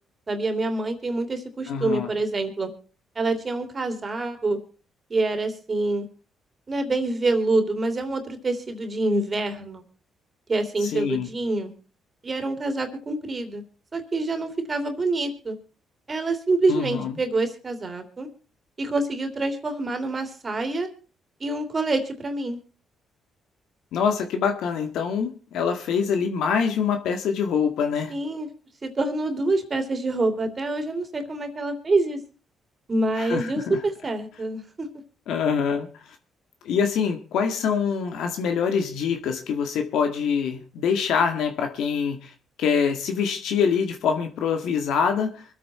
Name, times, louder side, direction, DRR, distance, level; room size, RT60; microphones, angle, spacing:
voice 1, 0.3-2.7 3.1-4.6 5.1-6.1 6.7-9.8 10.5-11.7 12.2-13.6 13.9-15.6 16.1-18.3 18.8-20.9 21.4-22.6 28.1-28.5 28.8-32.2 32.9-34.9, right 2 dB, 30° right, 6 dB, 3.0 m, -26 dB
voice 2, 1.7-2.1 10.8-11.3 16.7-17.1 23.9-28.1 33.2-33.8 35.3-35.9 36.6-42.3 42.6-45.4, left 6 dB, 80° left, 5 dB, 1.9 m, -25 dB
24.0 x 8.6 x 4.3 m, 0.38 s
cardioid pair, 90°, 0 cm